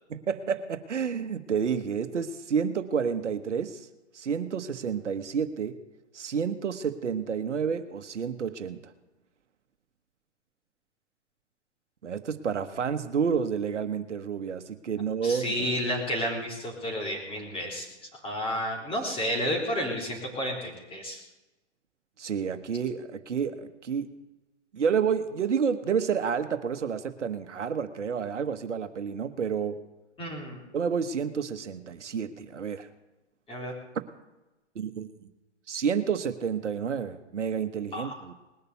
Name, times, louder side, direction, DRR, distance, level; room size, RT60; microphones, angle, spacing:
voice 1, 0.1-3.9 4.1-5.8 6.1-8.9 12.0-15.7 22.2-24.1 24.7-29.8 30.7-32.9 34.7-35.1 35.7-38.3, right 6 dB, 80° right, 10 dB, 1.2 m, -30 dB
voice 2, 15.2-17.9 18.2-21.2 30.2-30.6 33.5-33.7 37.9-38.2, equal, 15° left, 0 dB, 3.8 m, -31 dB
20.0 x 6.9 x 8.3 m, 1.0 s
hypercardioid pair, 125°, 35 cm